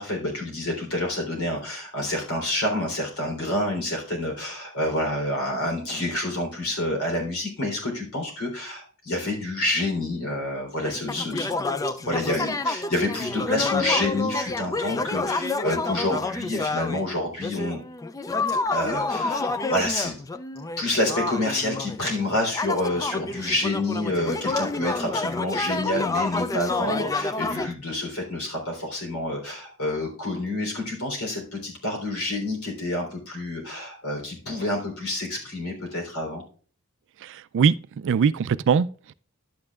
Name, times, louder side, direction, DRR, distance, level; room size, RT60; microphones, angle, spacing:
voice 1, 0.0-11.6 12.0-17.8 18.7-20.2 20.8-36.4, left 1 dB, 75° left, 3.5 m, -28 dB
sound 1, 10.8-17.1 17.4-27.7, left 3 dB, 15° left, 0.3 m, -28 dB
voice 2, 37.2-39.1, right 6 dB, 60° right, 0.3 m, -22 dB
11.5 x 8.7 x 2.4 m
head